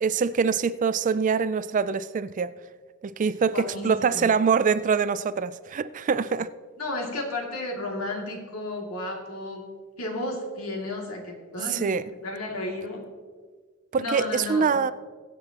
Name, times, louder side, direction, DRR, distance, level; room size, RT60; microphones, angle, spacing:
voice 1, 0.0-2.5 3.0-6.5 11.7-12.0 13.9-14.9, right 5 dB, 35° right, 0.3 m, -24 dB
voice 2, 3.5-4.3 6.8-9.6 10.0-11.8 12.2-13.0 14.0-14.8, left 2 dB, 80° left, 2.4 m, -33 dB
22.0 x 7.9 x 2.9 m
head